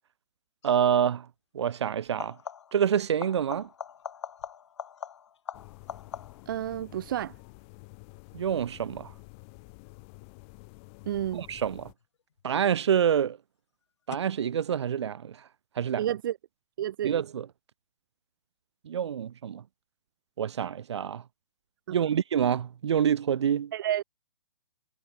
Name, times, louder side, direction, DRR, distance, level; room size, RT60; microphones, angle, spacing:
sound 1, 0.6-0.9 2.1-2.9 3.2-6.6 12.0-12.6 14.1-14.2, left 8 dB, 65° left, 4.9 m, -42 dB
voice 1, 0.6-1.3 1.5-2.4 2.7-3.7 8.3-9.1 11.3-11.9 12.4-13.4 14.1-15.4 15.8-16.1 17.0-17.5 18.8-19.6 20.4-21.2 21.9-23.7, right 8 dB, 60° right, 1.7 m, -27 dB
sound 2, 5.5-11.9, left 32 dB, 25° left, 3.4 m, -50 dB
voice 2, 6.5-7.3 11.1-11.4 16.0-16.4 16.8-17.2 21.9-22.0 23.7-24.0, right 11 dB, 45° right, 1.1 m, -30 dB
hypercardioid pair, 165°, 16 cm